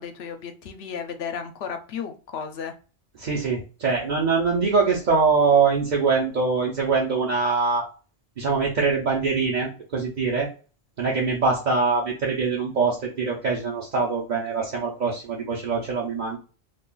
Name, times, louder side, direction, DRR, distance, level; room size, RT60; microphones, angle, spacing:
voice 1, 0.0-2.7, left 7 dB, 75° left, 7 dB, 0.8 m, -34 dB
voice 2, 3.2-7.8 8.4-10.5 11.0-16.4, right 4 dB, 50° right, -2 dB, 0.8 m, -23 dB
2.5 x 2.4 x 3.7 m, 0.36 s
omnidirectional pair, 1.1 m